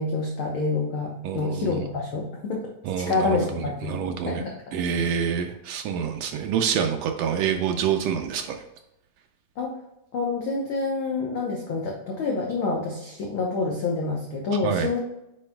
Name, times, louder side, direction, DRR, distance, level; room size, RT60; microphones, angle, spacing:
voice 1, 0.0-2.6 3.0-4.0 4.3-5.1 9.6-9.7 10.1-15.0, left 3 dB, 75° left, -1 dB, 1.2 m, -27 dB
voice 2, 1.2-1.9 2.8-4.4 4.7-8.6 14.6-14.9, right 7 dB, 90° right, 4 dB, 1.4 m, -27 dB
8.6 x 5.2 x 2.3 m, 0.89 s
omnidirectional pair, 3.6 m